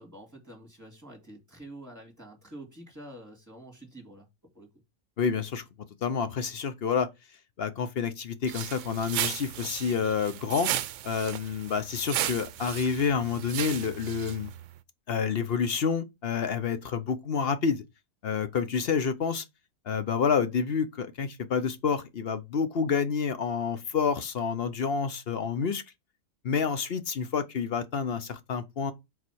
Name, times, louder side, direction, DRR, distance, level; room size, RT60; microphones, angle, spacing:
voice 1, 0.0-4.3 4.5-4.7, right 1 dB, 10° right, 2.2 m, -47 dB
voice 2, 5.2-5.6 6.0-7.1 7.6-10.7 11.0-14.5 15.1-17.8 18.2-19.4 19.9-25.8 26.4-28.9, left 6 dB, 50° left, 0.9 m, -28 dB
sound 1, 8.5-14.7, right 12 dB, 70° right, 0.8 m, -35 dB
7.0 x 4.2 x 4.6 m
omnidirectional pair, 1.4 m